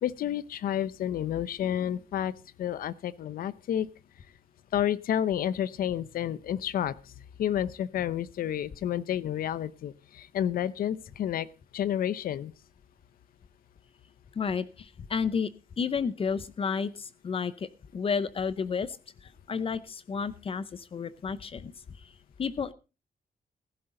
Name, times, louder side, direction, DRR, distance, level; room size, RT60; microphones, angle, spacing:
voice 1, 0.0-2.3 2.6-3.9 4.7-6.9 7.4-11.5 11.7-12.5, left 10 dB, 80° left, 18 dB, 0.7 m, -30 dB
voice 2, 14.4-15.5 15.8-19.0 19.5-21.7 22.4-22.7, left 6 dB, 40° left, 16 dB, 0.7 m, -31 dB
15.5 x 11.0 x 3.8 m, 0.31 s
wide cardioid pair, 140°, 15 cm